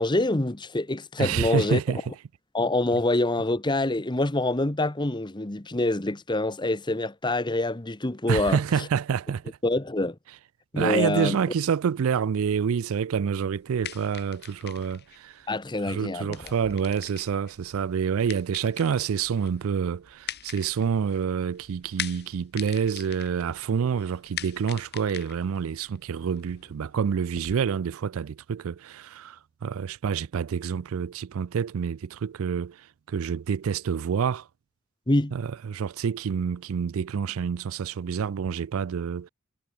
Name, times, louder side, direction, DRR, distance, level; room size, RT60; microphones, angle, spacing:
voice 1, 0.0-1.8 2.5-8.6 9.6-10.2 10.7-11.4 15.5-16.5 35.1-35.3, left 2 dB, 20° left, 1.0 m, -26 dB
voice 2, 1.2-2.0 8.3-9.6 10.8-15.5 15.9-34.5 35.3-39.3, right 7 dB, 65° right, 0.4 m, -28 dB
sound 1, 13.5-27.5, left 10 dB, 50° left, 2.8 m, -42 dB
head